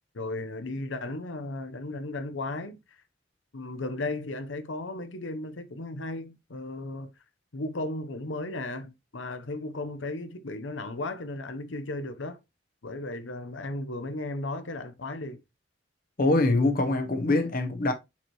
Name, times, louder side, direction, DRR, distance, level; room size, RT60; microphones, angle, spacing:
voice 1, 0.1-2.8 3.5-7.1 7.5-12.4 12.8-15.4, left 2 dB, 85° left, 0.8 m, -35 dB
voice 2, 16.2-17.9, left 2 dB, 50° left, 0.9 m, -24 dB
7.2 x 4.5 x 3.1 m
head